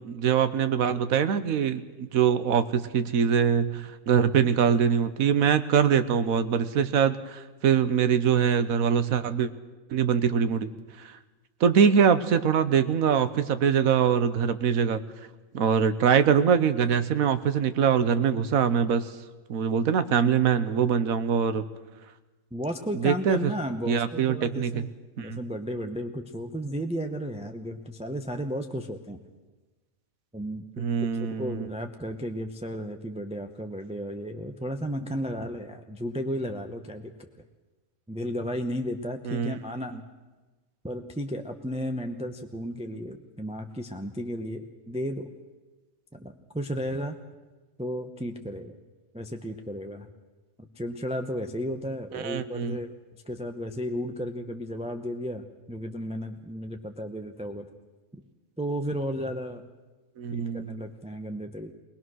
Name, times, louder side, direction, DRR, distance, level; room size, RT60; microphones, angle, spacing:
voice 1, 0.0-9.5 9.9-10.7 11.0-11.1 11.6-15.0 15.5-19.1 19.5-21.6 22.9-23.5 23.9-24.9 25.2-25.5 30.8-31.7 39.3-39.6 52.1-52.8 60.2-60.9, right 7 dB, 80° right, 12 dB, 1.4 m, -23 dB
voice 2, 22.5-24.9 25.2-29.2 30.3-37.3 38.1-40.0 40.8-45.3 46.1-47.2 47.8-48.8 49.1-50.1 50.6-52.9 53.3-57.7 58.1-58.2 58.6-59.6 60.3-61.7, equal, 5° right, 5 dB, 0.8 m, -34 dB
21.0 x 20.0 x 6.3 m, 1.2 s
omnidirectional pair, 1.4 m